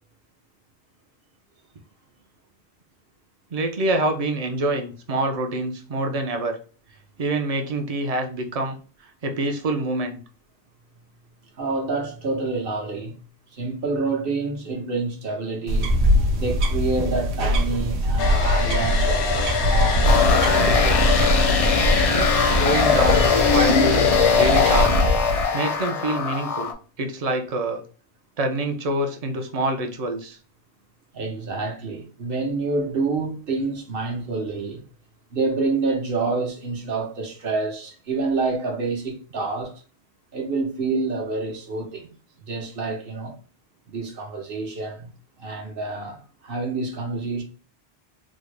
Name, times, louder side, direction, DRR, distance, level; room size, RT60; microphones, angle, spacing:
voice 1, 3.5-6.6 7.2-8.8 9.2-10.2 22.1-25.0 25.5-26.7 27.0-27.8 28.4-30.4, right 2 dB, 45° right, 0.5 m, -26 dB
voice 2, 11.6-13.2 13.5-16.0 16.3-21.2 31.1-34.8 35.3-39.8 40.3-42.1 42.5-43.3 43.9-45.1 45.4-47.4, right 3 dB, 60° right, 1.0 m, -28 dB
sound 1, 15.7-25.4, equal, 85° right, 0.9 m, -22 dB
Domestic sounds home sounds, 18.2-24.9, left 6 dB, 90° left, 0.9 m, -25 dB
sound 2, 20.0-26.7, left 5 dB, 50° left, 0.4 m, -21 dB
3.6 x 2.1 x 3.2 m
omnidirectional pair, 1.1 m